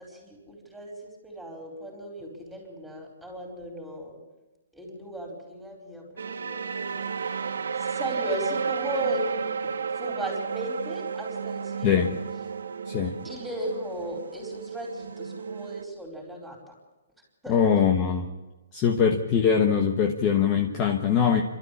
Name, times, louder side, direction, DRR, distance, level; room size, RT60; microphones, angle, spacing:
voice 1, 0.0-4.2 4.7-7.4 7.8-9.7 9.9-12.1 13.2-16.7 17.4-17.5, right 1 dB, ahead, -1 dB, 4.8 m, -36 dB
sound 1, 6.2-15.9, right 6 dB, 90° right, 1.3 m, -32 dB
voice 2, 17.5-18.2 18.7-21.4, left 7 dB, 20° left, 3 dB, 1.3 m, -22 dB
28.0 x 13.0 x 8.6 m, 1.1 s
hypercardioid pair, 170°, 0 cm